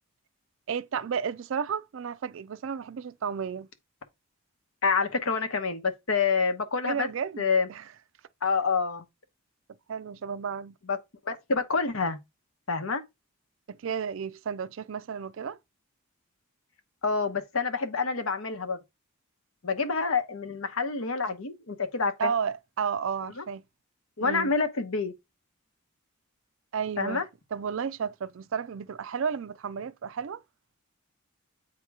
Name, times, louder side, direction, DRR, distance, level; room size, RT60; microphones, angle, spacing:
voice 1, 0.7-3.7 6.9-7.4 7.7-7.9 9.9-10.7 13.7-15.6 22.2-23.6 24.2-24.5 26.7-27.2 27.5-30.4, right 6 dB, 60° right, 0.4 m, -32 dB
voice 2, 4.8-7.1 7.4-7.7 8.4-9.0 10.9-11.0 11.3-12.2 12.7-13.0 17.0-18.8 19.6-22.3 23.4-23.5 24.2-25.1 27.0-27.2, left 4 dB, 70° left, 0.9 m, -27 dB
8.2 x 2.9 x 4.7 m
head